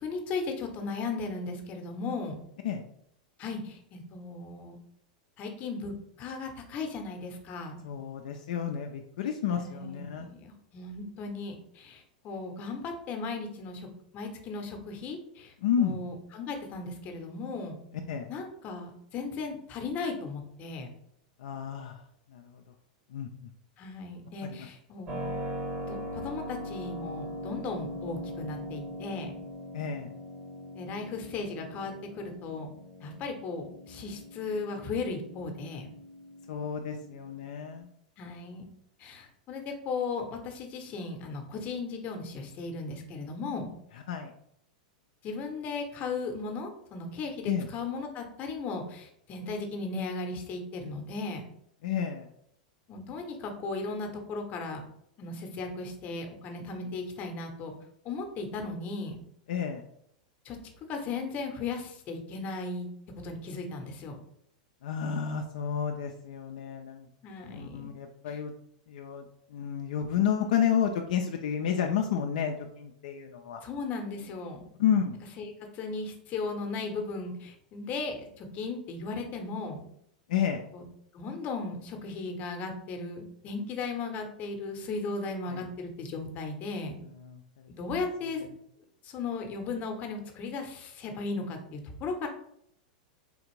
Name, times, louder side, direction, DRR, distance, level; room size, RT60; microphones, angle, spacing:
voice 1, 0.0-2.3 3.4-4.8 5.4-7.8 9.5-13.9 14.1-17.8 18.3-20.9 23.8-25.4 25.8-29.3 30.7-32.7 33.0-35.9 38.2-38.6 39.0-43.7 45.2-51.5 52.9-54.8 55.2-57.7 58.0-59.2 60.4-60.6 60.9-62.9 63.2-64.2 67.2-67.9 68.3-68.4 73.6-74.6 75.4-79.8 80.7-80.8 81.1-87.0 87.8-88.5 89.0-92.3, left 3 dB, 40° left, 4 dB, 0.7 m, -36 dB
voice 2, 7.8-10.3 15.6-16.0 18.1-18.3 21.4-22.0 22.3-22.5 23.1-23.3 24.4-24.7 29.7-30.1 36.5-37.9 44.1-44.3 47.5-47.7 51.8-52.3 59.5-59.8 64.8-67.1 67.5-68.5 68.9-69.2 69.5-73.6 74.8-75.2 80.3-80.6 85.5-85.6 87.0-87.7, left 8 dB, 70° left, 3 dB, 0.3 m, -31 dB
Keyboard (musical), 25.1-37.8, equal, 40° right, 1.0 m, -41 dB
3.5 x 2.4 x 3.0 m, 0.72 s
hypercardioid pair, 110°, 4 cm